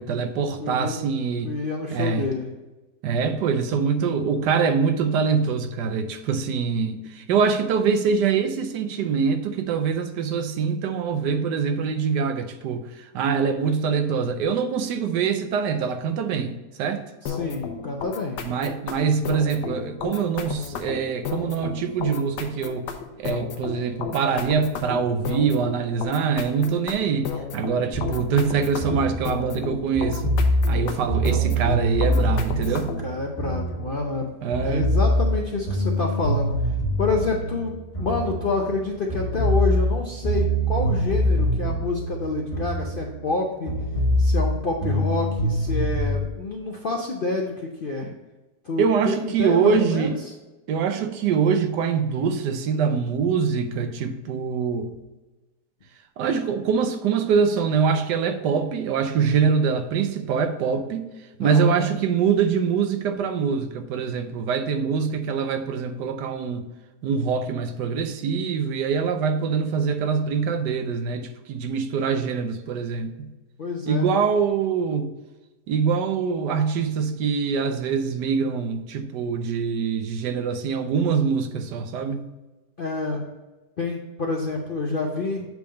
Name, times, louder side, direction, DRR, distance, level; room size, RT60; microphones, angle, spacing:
voice 1, 0.0-1.5 1.9-2.3 3.0-17.0 18.4-22.9 23.2-30.4 30.7-32.9 34.4-34.9 48.0-48.1 48.8-50.2 50.7-54.9 56.2-61.1 61.4-66.7 67.0-73.3 73.9-75.1 75.7-82.3, right 6 dB, 80° right, 1.3 m, -24 dB
voice 2, 0.6-1.0 1.4-2.5 17.2-18.4 28.0-28.4 32.5-32.7 33.0-34.3 34.6-36.5 37.0-43.7 44.2-48.1 48.6-50.3 61.4-61.8 73.6-74.0 82.8-83.2 83.8-85.4, left 3 dB, 55° left, 0.5 m, -28 dB
sound 1, 17.3-33.1, left 6 dB, 80° left, 1.3 m, -33 dB
sound 2, 27.9-34.2 34.5-38.8 39.1-43.4 43.7-46.2, equal, 25° left, 1.0 m, -24 dB
8.0 x 3.5 x 5.1 m
omnidirectional pair, 1.8 m